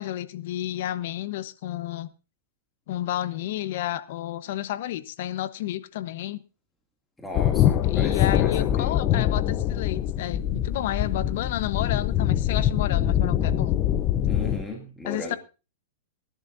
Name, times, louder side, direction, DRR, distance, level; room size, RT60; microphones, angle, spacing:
voice 1, 0.0-2.1 2.9-6.4 7.9-13.8 15.0-15.4, left 13 dB, 60° left, 13 dB, 1.1 m, -31 dB
voice 2, 7.2-9.0 14.3-15.4, left 2 dB, 5° left, -1 dB, 2.6 m, -36 dB
sound 1, 7.3-14.6, left 11 dB, 35° left, 0.8 m, -23 dB
24.0 x 11.5 x 2.7 m, 0.31 s
hypercardioid pair, 140°, 0 cm